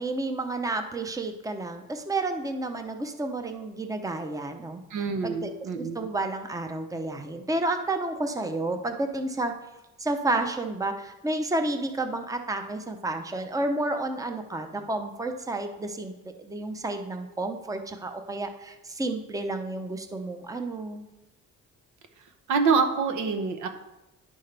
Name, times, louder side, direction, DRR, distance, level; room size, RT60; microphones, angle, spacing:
voice 1, 0.0-5.5 5.8-9.5 10.0-21.0, right 2 dB, 10° right, 6 dB, 0.7 m, -31 dB
voice 2, 4.9-6.1 22.5-23.7, right 5 dB, 75° right, 7 dB, 1.0 m, -26 dB
10.5 x 5.4 x 3.4 m, 0.96 s
cardioid pair, 90°, 30 cm